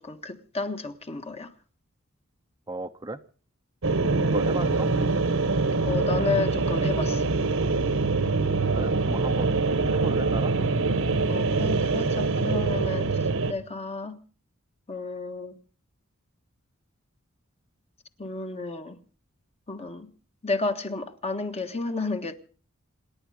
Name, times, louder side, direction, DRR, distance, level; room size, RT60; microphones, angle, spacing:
voice 1, 0.0-1.5 5.8-7.3 11.3-13.2 13.5-14.2 14.9-15.6 18.2-19.0 19.7-20.1 20.4-22.4, left 3 dB, 30° left, 1.4 m, -31 dB
voice 2, 2.7-3.2 4.2-4.9 8.7-10.5, right 2 dB, 20° right, 0.7 m, -35 dB
sound 1, 3.8-13.5, right 3 dB, 70° right, 1.2 m, -24 dB
27.0 x 10.5 x 4.9 m
head